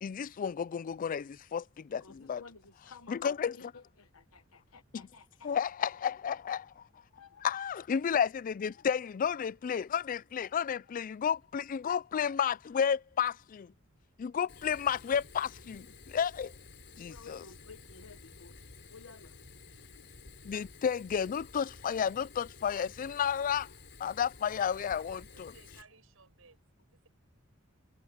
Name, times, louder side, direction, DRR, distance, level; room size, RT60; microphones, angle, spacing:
voice 1, 0.0-2.4 3.1-3.5 5.4-6.8 7.4-13.7 14.2-16.5 17.0-17.4 20.4-23.7 24.0-25.5, left 7 dB, 40° left, 0.3 m, -32 dB
voice 2, 1.9-3.3 3.5-5.5 7.2-7.5 15.6-16.0 17.0-19.4 19.7-20.1, left 5 dB, 90° left, 1.2 m, -54 dB
Fire, 14.5-25.8, left 3 dB, 60° left, 4.1 m, -53 dB
voice 3, 24.7-27.1, right 4 dB, 85° right, 6.2 m, -60 dB
head